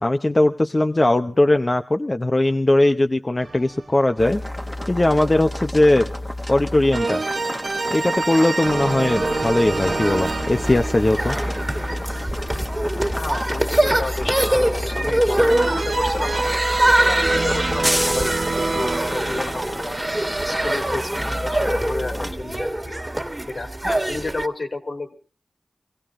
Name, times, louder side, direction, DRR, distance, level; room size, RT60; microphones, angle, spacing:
voice 1, 0.0-4.4 4.9-6.1 6.5-7.2 7.9-11.4, left 1 dB, 35° left, 6 dB, 0.8 m, -19 dB
sound 1, 3.4-4.3 6.9-12.9 15.5-21.1, right 3 dB, 65° right, 1.1 m, -28 dB
sound 2, 4.2-22.3, left 1 dB, 5° left, 1.1 m, -30 dB
sound 3, 9.0-24.5, right 1 dB, 20° right, 1.9 m, -24 dB
voice 2, 13.1-16.5 17.0-20.0 20.4-23.0 23.5-25.1, left 2 dB, 65° left, 6 dB, 2.6 m, -31 dB
23.5 x 16.5 x 3.7 m, 0.38 s
cardioid pair, 50°, 0 cm